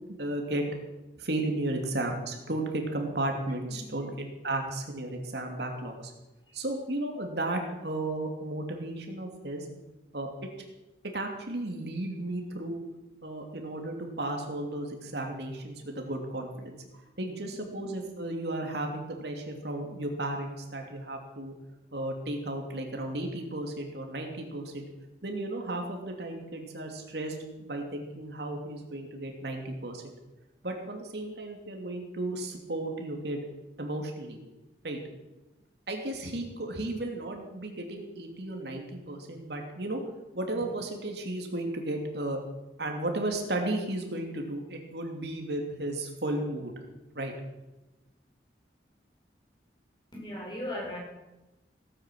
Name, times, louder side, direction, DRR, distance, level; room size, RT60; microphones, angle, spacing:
voice 1, 0.1-0.6 1.2-5.9 6.5-9.7 10.1-10.3 11.1-12.8 13.2-16.8 17.2-21.5 21.9-24.8 25.2-30.0 30.6-33.4 33.8-34.4 34.8-35.0 35.9-40.0 40.3-42.4 42.8-46.7 47.1-47.3, right 1 dB, 70° right, 2 dB, 2.8 m, -34 dB
voice 2, 50.1-51.0, left 1 dB, 25° left, -1 dB, 5.0 m, -36 dB
17.0 x 9.7 x 7.6 m, 1.0 s
head